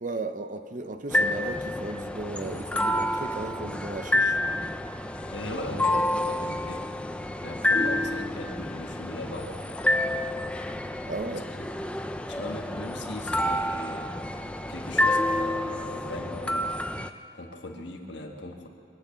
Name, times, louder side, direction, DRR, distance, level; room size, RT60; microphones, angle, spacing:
voice 1, 0.0-4.4 11.0-11.5, right 2 dB, 40° right, 8 dB, 0.6 m, -35 dB
sound 1, 1.1-17.1, left 1 dB, 5° left, 0.4 m, -29 dB
voice 2, 5.3-6.9 7.4-9.5 11.2-11.7 12.2-14.1 14.7-16.7 17.3-18.7, left 1 dB, 60° left, 2 dB, 1.6 m, -38 dB
23.0 x 8.7 x 6.8 m, 2.5 s
head